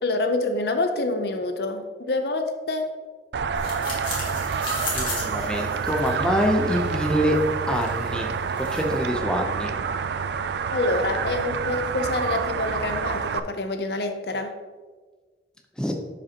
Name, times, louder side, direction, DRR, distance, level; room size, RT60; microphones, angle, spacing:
voice 1, 0.0-2.9 10.7-14.5, left 2 dB, 60° left, 6 dB, 0.6 m, -26 dB
sound 1, 3.3-13.4, right 6 dB, 65° right, 0.3 m, -28 dB
sound 2, 3.6-9.1, left 2 dB, 25° left, 1.9 m, -36 dB
voice 2, 4.9-7.4 7.7-9.7 15.8-15.9, equal, 5° left, 1 dB, 0.7 m, -25 dB
11.0 x 5.1 x 2.9 m, 1.4 s
head